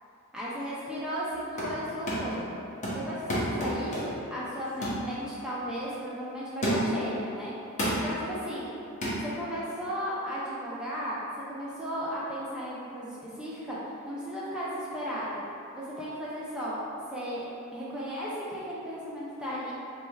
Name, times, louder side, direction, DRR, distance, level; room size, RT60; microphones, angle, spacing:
voice 1, 0.3-2.5 2.9-7.5 7.9-8.7 9.3-11.2 11.5-15.4 15.7-16.8 17.1-19.7, equal, 5° right, -9 dB, 0.4 m, -35 dB
sound 1, 1.3-1.8 2.1-2.4 2.8-4.3 4.8-5.1 5.6-5.7 6.6-7.1 7.8-8.1 9.0-9.2, equal, 35° left, 0.8 m, -30 dB
4.2 x 3.3 x 2.3 m, 2.7 s
head